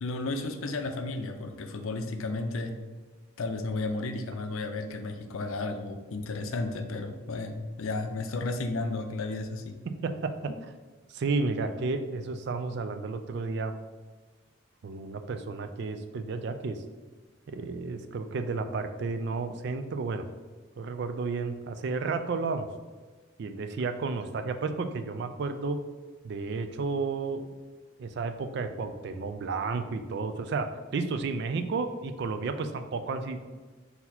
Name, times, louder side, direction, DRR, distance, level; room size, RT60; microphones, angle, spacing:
voice 1, 0.0-2.8 3.4-9.8, left 2 dB, 80° left, 7 dB, 0.5 m, -33 dB
voice 2, 10.0-10.3 11.1-13.7 14.8-16.8 17.5-20.2 20.8-22.7 23.4-25.8 26.2-27.5 28.0-30.7 30.9-33.4, right 4 dB, 55° right, 8 dB, 0.3 m, -32 dB
4.0 x 2.8 x 4.2 m, 1.3 s
head